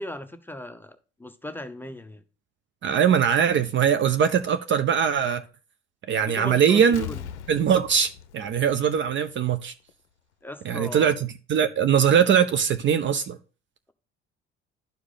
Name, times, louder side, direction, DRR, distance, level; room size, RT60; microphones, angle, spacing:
voice 1, 0.0-2.2 6.3-7.2 10.4-11.1, left 1 dB, 5° left, 0.7 m, -37 dB
voice 2, 2.8-5.4 6.1-7.1 7.5-9.7 10.6-13.4, right 8 dB, 35° right, 0.6 m, -21 dB
Explosion, 6.9-9.5 9.9-10.0, left 9 dB, 80° left, 0.6 m, -40 dB
11.5 x 4.8 x 3.8 m
figure-of-eight pair, 60°, 34 cm